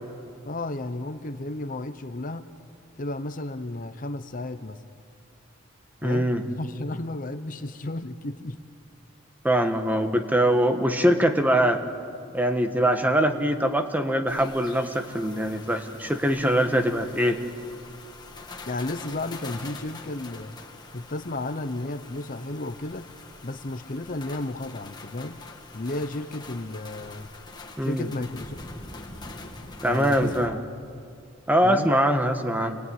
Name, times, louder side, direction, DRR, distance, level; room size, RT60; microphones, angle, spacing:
voice 1, 0.4-2.4 3.0-4.8 6.0-8.6 18.7-20.6 20.9-23.1 23.4-25.4 25.7-27.3 27.8-28.6 29.8-30.7 31.6-31.9, left 2 dB, 40° left, 10 dB, 0.9 m, -33 dB
voice 2, 6.0-6.4 9.4-11.8 12.3-17.4 27.8-28.1 29.8-30.6 31.5-32.8, equal, 10° right, 7 dB, 1.4 m, -23 dB
sound 1, 14.3-30.5, left 3 dB, 20° left, 2.3 m, -44 dB
28.5 x 21.0 x 9.5 m, 2.4 s
head